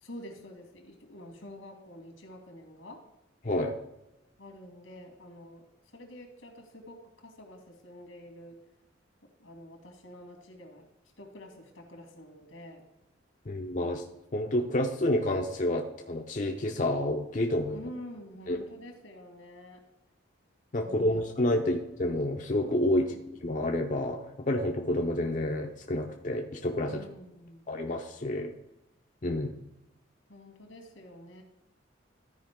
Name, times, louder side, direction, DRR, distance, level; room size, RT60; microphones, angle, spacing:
voice 1, 0.0-3.0 4.4-5.6 5.9-8.6 9.4-10.9 11.2-12.9 17.7-19.8 20.8-21.2 21.6-21.7 22.9-23.2 26.9-27.7 30.3-31.4, left 1 dB, 85° left, 3 dB, 2.1 m, -48 dB
voice 2, 3.4-3.8 13.5-14.0 14.3-17.8 18.5-18.6 20.7-23.1 23.4-27.0 27.7-28.5 29.2-29.5, left 1 dB, 40° left, 2 dB, 0.6 m, -29 dB
13.0 x 5.1 x 3.7 m, 0.90 s
head